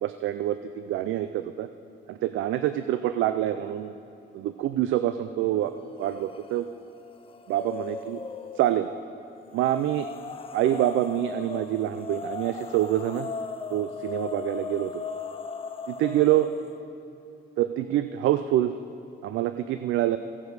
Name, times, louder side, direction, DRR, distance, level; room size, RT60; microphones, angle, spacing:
voice 1, 0.0-1.7 2.1-3.9 4.3-5.7 6.0-6.7 7.5-8.2 8.6-8.9 9.5-10.1 10.5-13.3 13.7-15.0 15.9-16.5 17.6-18.7 19.2-20.2, right 13 dB, 80° right, 10 dB, 0.4 m, -26 dB
sound 1, 6.0-6.6 6.9-8.8 9.5-16.7, left 5 dB, 30° left, 0.6 m, -38 dB
16.5 x 7.1 x 4.8 m, 2.7 s
cardioid pair, 90°, 20 cm